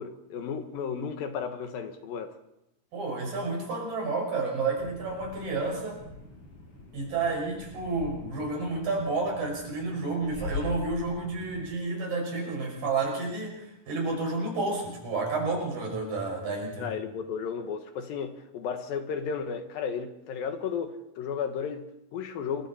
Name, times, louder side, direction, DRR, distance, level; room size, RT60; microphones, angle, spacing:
voice 1, 0.0-2.4 16.8-22.7, left 6 dB, 70° left, 2.9 m, -34 dB
voice 2, 2.9-6.0 6.9-16.9, right 3 dB, 60° right, 7.4 m, -30 dB
sound 1, 4.8-11.7, left 4 dB, 50° left, 7.5 m, -42 dB
28.0 x 23.0 x 4.3 m
omnidirectional pair, 4.5 m